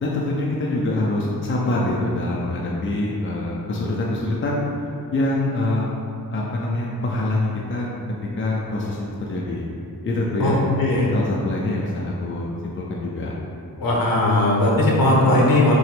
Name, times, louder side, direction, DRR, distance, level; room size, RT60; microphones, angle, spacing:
voice 1, 0.0-4.6 5.1-5.9 6.3-7.9 8.4-9.0 9.3-9.7 10.0-10.7 11.1-13.3, left 2 dB, 35° left, -3 dB, 0.6 m, -24 dB
voice 2, 10.4-11.1 13.8-15.8, left 1 dB, 65° left, -3 dB, 1.2 m, -18 dB
6.1 x 3.1 x 5.0 m, 2.6 s
wide cardioid pair, 165°, 37 cm